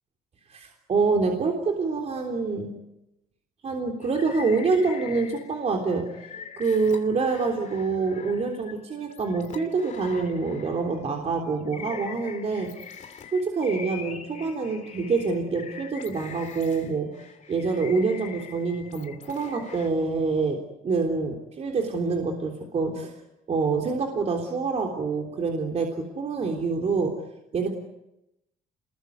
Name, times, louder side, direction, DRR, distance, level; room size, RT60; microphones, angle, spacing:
voice 1, 0.5-2.8 3.6-6.1 6.6-12.7 13.3-17.2 17.5-20.6 20.8-23.1 23.5-27.2 27.5-27.7, right 4 dB, 40° right, 2 dB, 3.6 m, -26 dB
sound 1, 4.0-5.6 5.9-11.0 11.5-19.9, left 7 dB, 45° left, 3.0 m, -43 dB
27.5 x 21.5 x 9.5 m, 0.89 s
cardioid pair, 110°, 17 cm